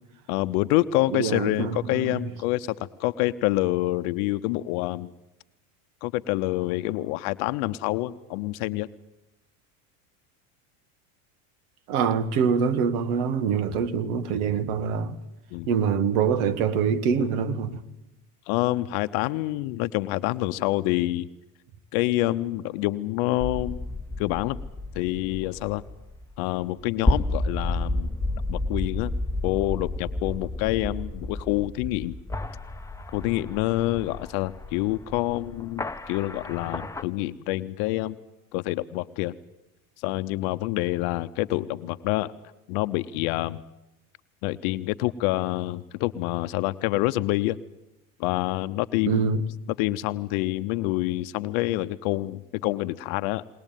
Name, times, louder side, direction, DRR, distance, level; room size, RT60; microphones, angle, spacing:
voice 1, 0.3-5.1 6.0-8.9 15.5-15.7 18.5-21.3 21.9-23.8 24.2-24.6 24.9-25.8 26.4-28.1 28.5-29.1 29.4-32.1 33.1-38.2 38.5-39.3 40.0-42.3 42.7-43.6 44.4-47.6 48.2-49.2 49.8-53.4, left 17 dB, 70° left, 0.8 m, -27 dB
voice 2, 1.1-2.3 11.9-15.2 15.7-17.8 49.1-49.4, right 6 dB, 75° right, 1.6 m, -25 dB
sound 1, 23.4-37.0, left 2 dB, 5° left, 1.0 m, -31 dB
21.0 x 19.5 x 9.1 m
supercardioid pair, 100°, 43 cm